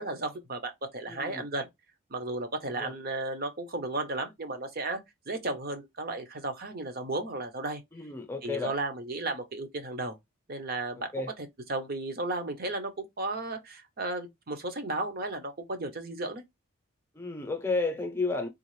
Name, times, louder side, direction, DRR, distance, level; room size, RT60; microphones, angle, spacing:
voice 1, 0.0-1.7 2.1-5.0 5.3-7.8 8.4-10.2 10.5-11.1 11.7-16.4, right 2 dB, 45° right, 0.8 m, -34 dB
voice 2, 1.1-1.4 2.7-2.9 7.9-8.8 11.1-11.3 17.1-18.5, left 3 dB, 10° left, 0.7 m, -32 dB
3.7 x 2.4 x 3.1 m
head